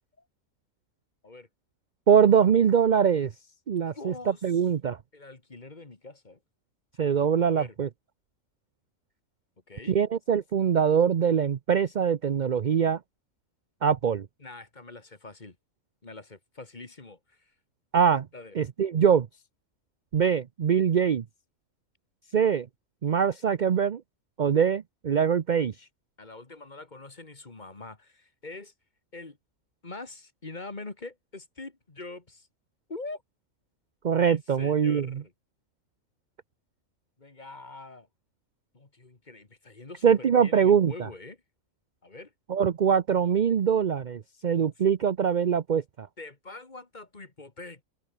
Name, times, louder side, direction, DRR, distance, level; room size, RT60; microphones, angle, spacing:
voice 1, 2.1-3.3 3.7-5.0 7.0-7.9 9.9-13.0 13.8-14.3 17.9-18.3 18.5-19.3 20.1-21.2 22.3-22.7 23.0-24.0 24.4-25.7 34.0-35.2 40.0-41.1 42.5-46.1, right 7 dB, 50° right, 0.6 m, -23 dB
voice 2, 3.8-4.4 5.1-6.4 7.5-7.8 9.7-10.0 14.4-15.6 16.0-17.5 18.3-18.6 26.2-28.7 29.1-29.4 29.8-32.5 32.9-33.2 34.3-35.3 37.2-38.1 38.7-41.4 42.0-42.3 44.6-44.7 46.2-47.8, left 3 dB, 30° left, 2.1 m, -44 dB
omnidirectional pair, 1.5 m